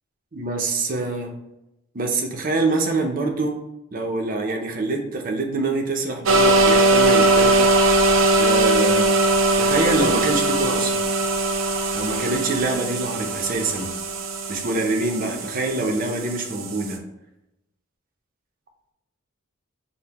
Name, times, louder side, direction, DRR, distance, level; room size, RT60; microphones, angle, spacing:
voice 1, 0.3-1.3 1.9-3.5 3.9-7.7 8.3-9.1 9.6-11.1 11.9-13.9 14.5-17.0, right 3 dB, 45° right, 2 dB, 0.6 m, -25 dB
sound 1, 6.3-17.0, right 2 dB, 90° right, 0.5 m, -20 dB
5.3 x 2.1 x 2.9 m, 0.88 s
head